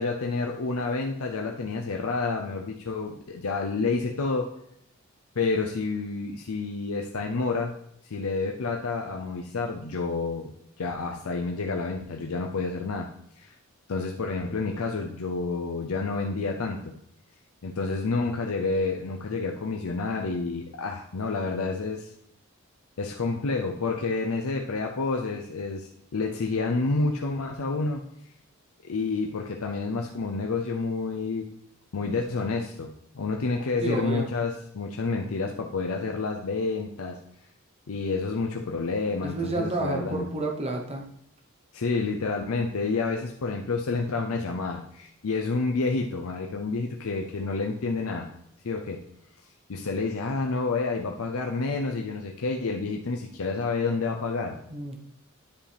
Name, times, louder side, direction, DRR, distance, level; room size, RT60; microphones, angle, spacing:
voice 1, 0.0-4.5 5.4-7.7 8.0-13.1 13.4-13.5 13.9-16.9 17.6-22.1 23.0-28.0 28.8-31.5 31.9-37.2 37.9-40.3 41.7-48.3 48.6-49.0 49.7-54.6, left 3 dB, 85° left, 2 dB, 0.6 m, -29 dB
voice 2, 33.8-34.3 39.2-41.0 54.7-55.0, right 2 dB, 30° right, 2 dB, 1.0 m, -30 dB
10.5 x 5.0 x 3.4 m, 0.72 s
head